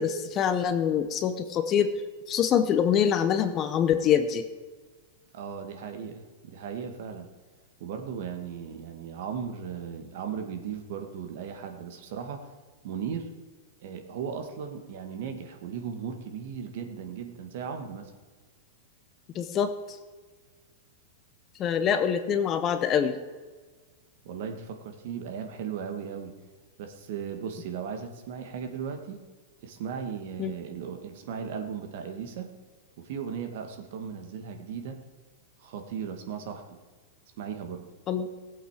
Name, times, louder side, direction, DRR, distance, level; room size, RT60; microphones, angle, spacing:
voice 1, 0.0-1.9 2.3-4.4 19.3-19.7 21.6-23.2 30.4-30.5 38.1-38.3, left 8 dB, 20° left, 9 dB, 0.7 m, -25 dB
voice 2, 5.3-7.3 7.8-12.5 12.8-13.3 13.8-18.1 24.2-26.3 26.8-29.2 29.6-32.5 33.0-35.0 35.6-36.8 37.4-37.9, right 7 dB, 50° right, 6 dB, 1.7 m, -37 dB
18.0 x 8.1 x 5.0 m, 1.4 s
supercardioid pair, 175°, 0 cm